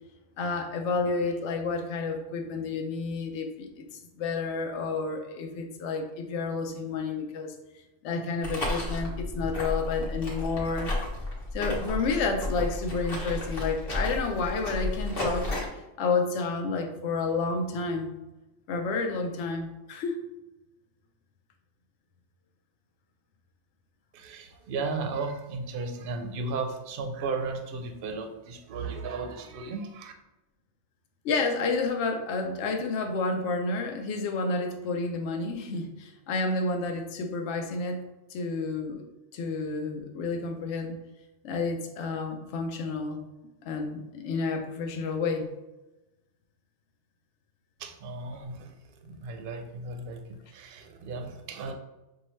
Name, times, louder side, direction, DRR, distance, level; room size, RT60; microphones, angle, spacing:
voice 1, 0.4-7.5 8.0-10.9 11.5-15.5 16.0-18.2 18.7-20.2 31.2-38.0 38.3-39.0 39.3-40.9 41.4-43.2 43.6-45.5, left 4 dB, 70° left, 4 dB, 0.9 m, -30 dB
sound 1, 8.4-15.7, left 2 dB, 50° left, 1.1 m, -32 dB
voice 2, 24.1-30.1 47.8-51.7, right 4 dB, 60° right, 5 dB, 0.6 m, -35 dB
5.6 x 2.3 x 3.1 m, 1.0 s
omnidirectional pair, 1.3 m